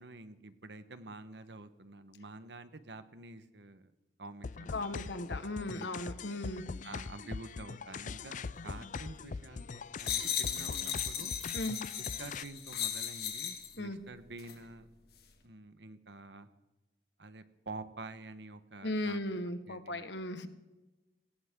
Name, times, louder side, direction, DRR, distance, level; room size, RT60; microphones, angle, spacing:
voice 1, 0.0-3.9 4.2-4.9 5.7-5.9 6.8-11.4 12.0-14.9 15.4-16.5 17.2-19.2 19.7-20.0, right 2 dB, 80° right, 11 dB, 1.3 m, -48 dB
sound 1, 4.4-12.4, left 4 dB, 45° left, 0.4 m, -42 dB
voice 2, 4.7-6.7 11.5-11.8 13.8-14.0 18.8-20.5, left 1 dB, 85° left, 9 dB, 1.5 m, -37 dB
sound 2, 10.0-13.7 14.4-14.6, left 9 dB, 60° left, 2.2 m, -36 dB
20.5 x 18.0 x 3.8 m, 1.1 s
head